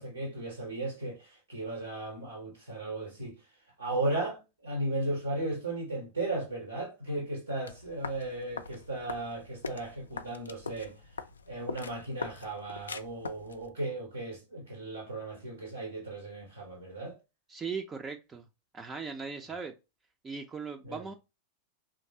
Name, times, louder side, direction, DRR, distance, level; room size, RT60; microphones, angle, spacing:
voice 1, 0.0-3.4 3.8-11.0 11.5-17.2 20.8-21.0, right 2 dB, 85° right, 0.9 m, -36 dB
sound 1, 7.7-13.7, left 5 dB, 70° left, 0.3 m, -42 dB
voice 2, 17.5-18.5 18.7-19.7 20.2-21.1, right 5 dB, 20° right, 0.3 m, -38 dB
3.1 x 2.4 x 2.7 m
figure-of-eight pair, 90°, 0 cm